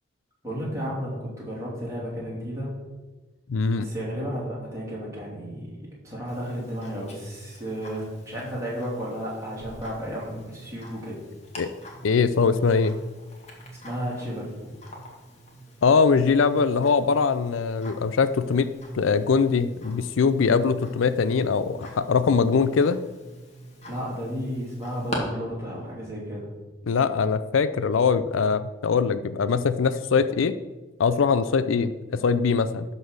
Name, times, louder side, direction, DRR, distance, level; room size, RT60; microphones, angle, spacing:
voice 1, 0.4-2.7 3.8-5.8 6.0-11.2 13.8-14.6 23.9-26.5, equal, 15° right, -6 dB, 3.2 m, -33 dB
voice 2, 3.5-3.9 11.6-11.7 12.0-13.0 15.8-18.7 18.9-23.0 26.9-30.6 31.0-32.8, left 5 dB, 85° left, 12 dB, 0.4 m, -22 dB
Tick-tock, 6.3-25.2, left 1 dB, 35° left, 1.8 m, -45 dB
12.0 x 4.1 x 6.4 m, 1.2 s
head